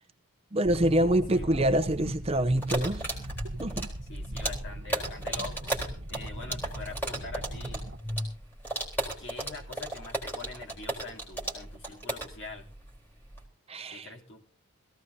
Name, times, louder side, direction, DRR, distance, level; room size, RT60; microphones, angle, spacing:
voice 1, 0.5-3.2 3.6-3.9 13.7-14.1, right 1 dB, 25° right, 0.7 m, -26 dB
sound 1, 0.6-8.0, right 1 dB, 60° right, 1.2 m, -38 dB
sound 2, 2.6-13.4, right 1 dB, 10° left, 3.8 m, -35 dB
voice 2, 4.1-5.7 6.1-7.9 9.2-12.7 13.9-14.4, left 3 dB, 55° left, 3.2 m, -44 dB
22.0 x 15.5 x 2.7 m
head